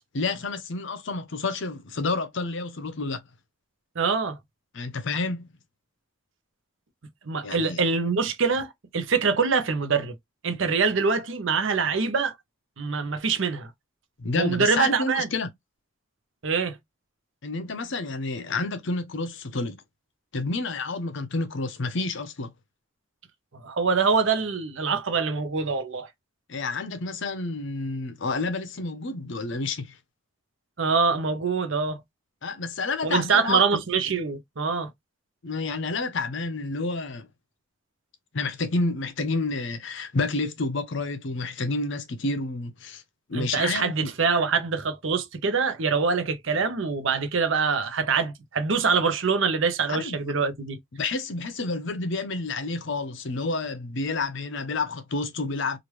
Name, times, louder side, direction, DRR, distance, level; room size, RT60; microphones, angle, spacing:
voice 1, 0.1-3.2 4.7-5.5 7.4-7.8 14.2-15.5 17.4-19.8 20.3-22.5 26.5-29.9 32.4-33.6 35.4-37.3 38.3-43.0 43.3-44.1 49.9-50.3 50.9-55.8, left 3 dB, 55° left, 0.6 m, -29 dB
voice 2, 4.0-4.4 7.3-10.1 10.4-12.3 12.8-13.7 14.3-15.3 16.4-16.8 23.6-26.1 30.8-32.0 33.0-34.9 43.3-50.8, right 5 dB, 60° right, 0.7 m, -24 dB
3.2 x 2.4 x 3.0 m
head